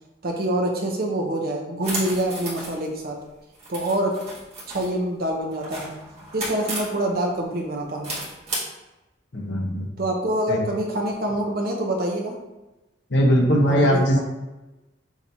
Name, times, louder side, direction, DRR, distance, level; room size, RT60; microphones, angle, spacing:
voice 1, 0.2-3.2 3.7-4.2 4.7-5.9 6.3-8.1 10.0-12.3 13.7-14.2, right 1 dB, 55° right, 0 dB, 0.8 m, -26 dB
sound 1, 1.8-2.9 3.5-4.9 5.5-6.9 8.0-8.6, right 2 dB, 35° right, 1.4 m, -33 dB
voice 2, 9.3-9.9 10.5-10.6 13.1-14.2, equal, 75° left, -1 dB, 1.0 m, -19 dB
5.9 x 2.8 x 2.7 m, 1.0 s
head